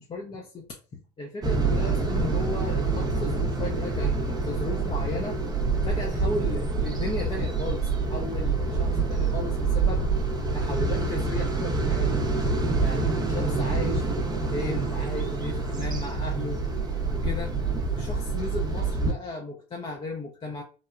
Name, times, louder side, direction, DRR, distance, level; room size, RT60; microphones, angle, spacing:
voice 1, 0.0-5.4 5.8-10.0 10.5-12.2 12.6-16.6 17.1-20.6, left 3 dB, 25° left, 1 dB, 0.6 m, -35 dB
sound 1, 1.4-19.1, right 3 dB, 20° right, 0.6 m, -26 dB
3.0 x 2.0 x 2.4 m, 0.35 s
hypercardioid pair, 75°, 20 cm